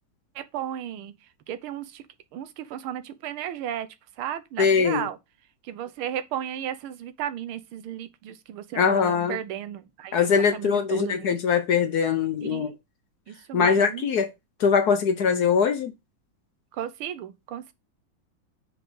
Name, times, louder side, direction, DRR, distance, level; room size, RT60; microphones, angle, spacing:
voice 1, 0.3-2.0 2.3-3.9 4.2-5.2 5.6-11.4 12.4-12.7 13.3-14.0 16.7-17.7, right 10 dB, 85° right, 1.7 m, -34 dB
voice 2, 4.6-5.1 8.8-9.4 10.1-12.7 13.5-14.3 14.6-15.9, left 6 dB, 60° left, 1.1 m, -22 dB
5.2 x 5.0 x 6.2 m
omnidirectional pair, 2.3 m